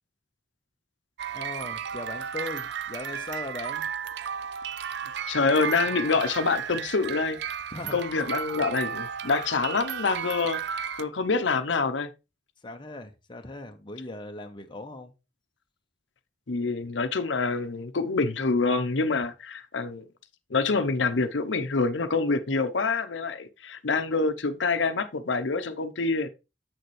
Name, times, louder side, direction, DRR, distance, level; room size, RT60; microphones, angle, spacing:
sound 1, 1.2-11.0, right 7 dB, 65° right, 0.5 m, -34 dB
voice 1, 1.3-3.9 7.7-8.0 12.6-15.1, left 2 dB, 25° left, 0.9 m, -39 dB
voice 2, 5.3-7.4 7.9-12.1 16.5-20.0 20.5-26.3, left 4 dB, 90° left, 0.8 m, -26 dB
7.9 x 6.7 x 3.2 m
head